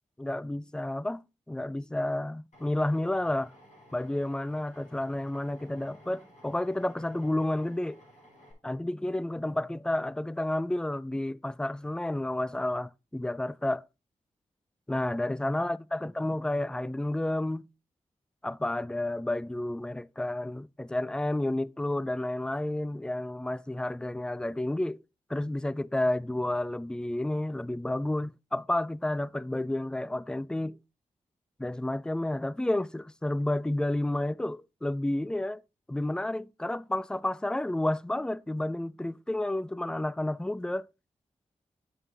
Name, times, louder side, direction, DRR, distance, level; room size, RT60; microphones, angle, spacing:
voice 1, 0.2-3.5 3.9-8.0 8.6-13.8 14.9-17.6 18.4-25.0 25.3-30.8 31.6-35.6 35.9-40.9, left 1 dB, 5° left, 0.3 m, -31 dB
Drill, 2.5-8.5, equal, 70° left, 5.4 m, -55 dB
8.8 x 8.8 x 2.7 m
cardioid pair, 55°, 13 cm